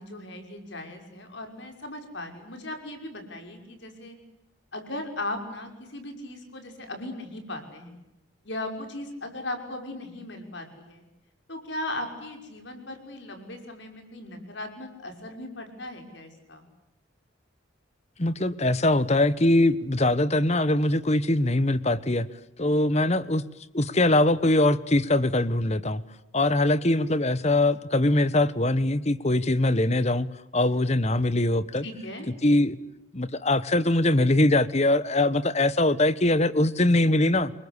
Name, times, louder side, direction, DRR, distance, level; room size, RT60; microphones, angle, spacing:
voice 1, 0.0-4.2 4.7-8.0 8.4-11.0 11.5-16.6 31.8-32.3, left 1 dB, 60° left, 5 dB, 6.0 m, -37 dB
voice 2, 18.2-22.3 22.6-23.4 23.7-26.0 26.3-30.3 30.5-31.8 32.4-32.8 33.1-37.5, left 1 dB, 35° left, 16 dB, 1.2 m, -22 dB
29.0 x 23.0 x 8.3 m, 0.92 s
head